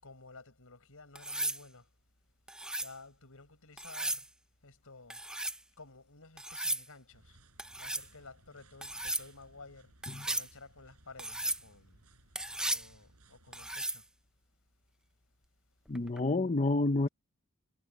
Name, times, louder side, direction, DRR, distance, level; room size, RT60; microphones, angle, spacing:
voice 1, 0.0-1.9 2.8-4.3 4.6-5.2 5.8-7.4 7.8-9.9 10.2-12.0 12.6-14.1, left 3 dB, 70° left, 7.2 m, -53 dB
sound 1, 1.2-1.6 2.5-2.9 3.8-4.3 5.1-5.6 6.4-6.9 7.6-8.1 8.8-9.3 10.0-10.5 11.2-11.6 12.4-12.9 13.5-14.0 16.0-16.2, right 1 dB, 5° right, 0.6 m, -35 dB
sound 2, 7.1-13.8, right 2 dB, 85° right, 6.2 m, -63 dB
voice 2, 15.9-17.1, left 2 dB, 35° left, 0.8 m, -29 dB
head